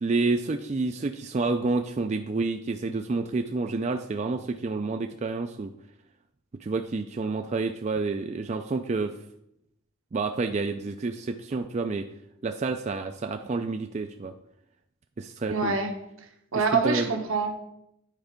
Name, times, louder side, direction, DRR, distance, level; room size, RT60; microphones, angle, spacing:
voice 1, 0.0-5.7 6.6-9.1 10.1-12.1 12.4-14.3 15.2-15.8 16.5-17.1, right 3 dB, 35° right, 6 dB, 0.3 m, -29 dB
voice 2, 15.5-15.9 16.5-17.5, right 4 dB, 75° right, 3 dB, 1.3 m, -25 dB
9.3 x 4.4 x 5.1 m, 0.79 s
head